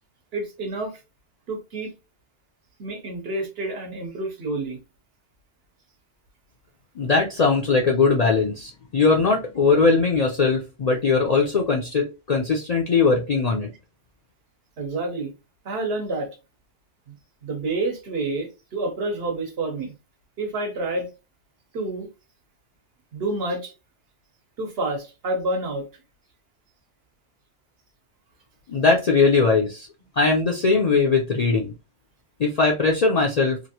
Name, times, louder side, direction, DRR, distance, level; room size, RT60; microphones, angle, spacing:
voice 1, 0.3-1.0 1.5-1.9 2.8-4.8 14.8-15.3 15.6-16.4 17.1-17.2 17.4-19.9 20.4-21.1 21.7-22.1 23.1-23.7 24.6-25.9, right 2 dB, 65° right, 1.0 m, -28 dB
voice 2, 7.0-13.7 28.7-29.9 30.2-31.7 32.4-33.6, left 4 dB, 50° left, 0.5 m, -20 dB
2.9 x 2.5 x 2.7 m
omnidirectional pair, 1.2 m